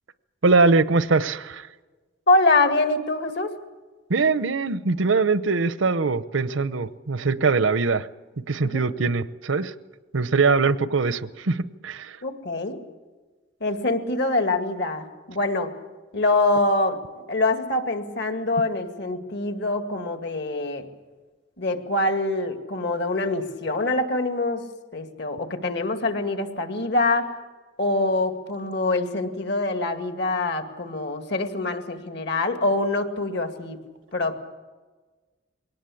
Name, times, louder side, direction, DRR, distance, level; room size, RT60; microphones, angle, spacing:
voice 1, 0.4-1.7 4.1-8.1 8.5-9.7 10.1-12.2, right 4 dB, 75° right, 15 dB, 0.8 m, -22 dB
voice 2, 2.3-3.6 8.6-8.9 12.2-12.8 13.6-15.7 16.1-17.0 17.3-20.9 21.6-24.6 24.9-27.3 27.8-33.8 34.1-34.4, left 2 dB, 60° left, 7 dB, 2.1 m, -24 dB
22.0 x 18.5 x 8.5 m, 1.3 s
head